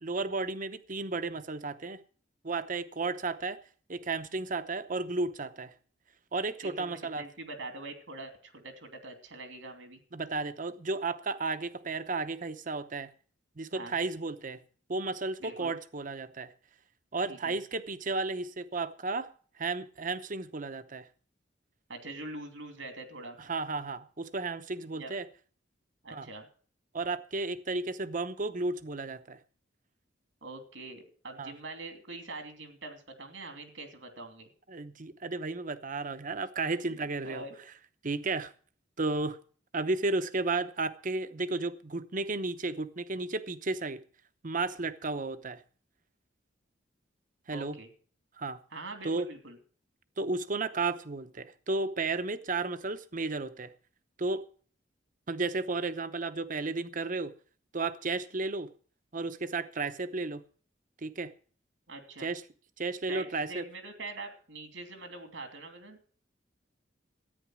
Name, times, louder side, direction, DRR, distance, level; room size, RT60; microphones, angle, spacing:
voice 1, 0.0-2.0 2.4-3.6 3.9-5.7 6.3-7.2 10.1-13.1 13.6-14.6 14.9-16.5 17.1-19.3 19.6-21.1 23.5-25.3 26.1-26.3 26.9-29.4 31.4-31.5 34.7-37.4 38.0-38.5 39.0-39.4 39.7-44.0 44.4-45.6 47.5-47.8 48.4-48.6 49.0-49.3 50.2-53.7 54.2-54.4 55.3-57.3 57.7-58.7 59.1-60.4 61.0-61.3 62.2-62.4 62.8-63.6, right 3 dB, 45° right, 11 dB, 0.9 m, -33 dB
voice 2, 6.6-10.0 13.7-13.9 15.4-15.7 17.2-17.6 21.9-23.4 24.9-25.1 26.0-26.5 30.4-34.5 37.2-37.6 47.5-47.9 48.7-49.6 61.9-62.3 63.1-66.0, right 2 dB, 85° right, 6 dB, 2.8 m, -44 dB
13.5 x 9.5 x 6.2 m, 0.43 s
head